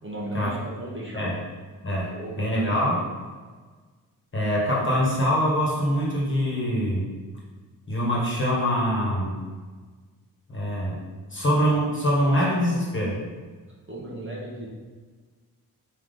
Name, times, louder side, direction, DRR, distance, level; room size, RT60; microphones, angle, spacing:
voice 1, 0.0-1.3 2.1-2.9 13.9-14.7, right 1 dB, 35° right, -5 dB, 1.0 m, -36 dB
voice 2, 1.8-3.0 4.3-7.0 7.9-9.4 10.5-11.0 11.3-13.2, equal, 35° left, -5 dB, 1.5 m, -24 dB
3.7 x 3.1 x 3.7 m, 1.4 s
cardioid pair, 75°, 36 cm